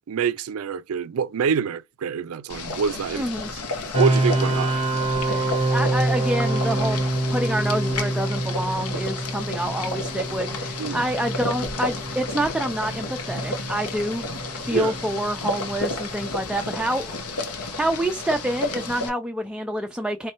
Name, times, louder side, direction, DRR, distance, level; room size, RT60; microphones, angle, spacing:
voice 1, 0.0-3.3 4.0-4.7 10.8-11.0 14.7-15.0, right 6 dB, 70° right, 0.4 m, -26 dB
Boiling, 2.5-19.1, left 3 dB, 85° left, 1.2 m, -32 dB
voice 2, 3.2-3.5 5.3-17.2 17.5-20.3, right 1 dB, 5° right, 0.4 m, -27 dB
sound 1, 3.9-16.8, right 2 dB, 25° right, 0.7 m, -27 dB
4.4 x 3.2 x 2.9 m
head